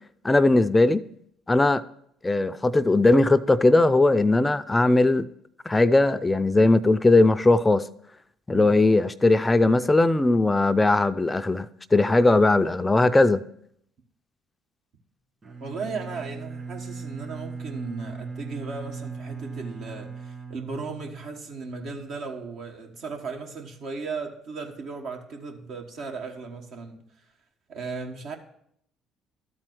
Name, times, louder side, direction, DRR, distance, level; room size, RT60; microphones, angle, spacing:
voice 1, 0.2-1.0 1.5-1.8 2.2-5.3 5.7-7.8 8.5-11.7 11.9-13.4, left 2 dB, 20° left, 0.4 m, -19 dB
Bowed string instrument, 15.4-21.5, right 5 dB, 35° right, 2.4 m, -38 dB
voice 2, 15.6-27.0 27.7-28.4, right 4 dB, 65° right, 1.4 m, -36 dB
12.5 x 4.4 x 6.1 m
hypercardioid pair, 65°, 0 cm